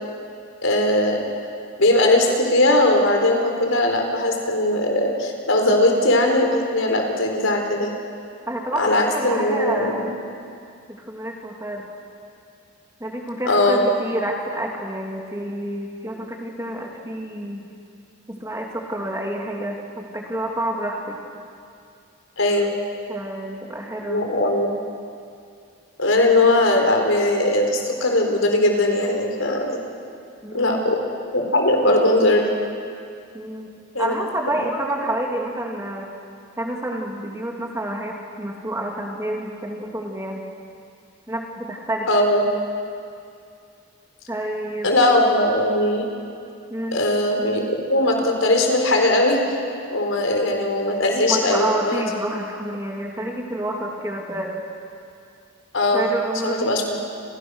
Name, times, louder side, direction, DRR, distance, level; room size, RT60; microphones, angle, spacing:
voice 1, 0.6-1.2 1.8-7.9 8.8-10.0 13.5-13.8 22.4-22.7 24.0-24.7 26.0-29.8 30.5-31.0 31.3-32.5 33.9-34.1 42.1-42.4 44.8-46.1 46.9-49.6 49.9-52.0 55.7-56.1 56.4-56.9, left 1 dB, 85° left, 2 dB, 4.4 m, -19 dB
voice 2, 8.5-10.2 10.9-11.9 13.0-17.7 18.3-21.2 23.1-24.3 30.4-30.9 33.3-33.7 34.0-36.1 36.6-40.4 41.3-42.1 44.3-44.9 46.7-47.0 51.3-54.6 55.9-56.8, right 1 dB, 15° right, 0 dB, 2.8 m, -29 dB
29.5 x 27.0 x 6.5 m, 2.4 s
head